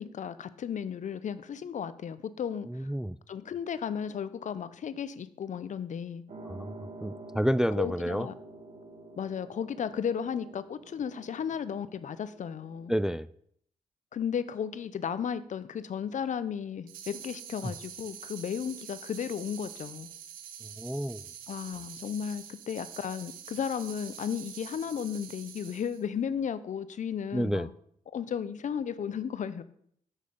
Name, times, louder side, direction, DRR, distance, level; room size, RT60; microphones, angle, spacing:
voice 1, 0.0-2.9 3.3-6.2 7.8-8.3 9.2-12.9 14.1-20.1 21.5-27.7 28.1-29.6, left 7 dB, 60° left, 14 dB, 0.6 m, -34 dB
voice 2, 2.7-3.1 6.5-6.7 7.0-8.3 12.9-13.3 17.6-17.7 20.8-21.2 27.3-27.7, equal, 5° right, 16 dB, 0.3 m, -29 dB
sound 1, 6.3-12.9, right 2 dB, 60° right, 2.0 m, -48 dB
sound 2, 16.9-26.0, right 9 dB, 90° right, 0.8 m, -46 dB
7.4 x 6.6 x 5.1 m, 0.67 s
supercardioid pair, 50°, 14 cm